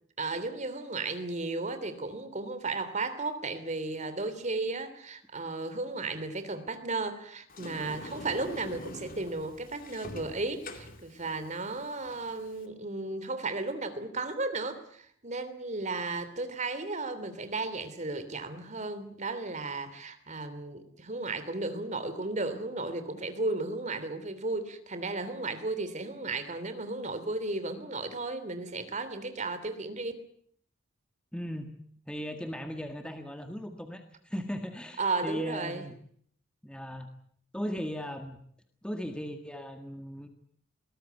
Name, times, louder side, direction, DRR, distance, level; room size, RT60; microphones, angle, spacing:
voice 1, 0.2-30.1 35.0-35.9, right 3 dB, 35° right, 11 dB, 3.1 m, -34 dB
Sliding door, 7.5-12.7, left 2 dB, 45° left, 2.5 m, -45 dB
voice 2, 31.3-31.7 32.1-36.0 36.6-37.1 37.5-38.4 38.8-40.3, equal, 5° left, 6 dB, 1.7 m, -37 dB
21.5 x 19.5 x 9.5 m, 0.63 s
head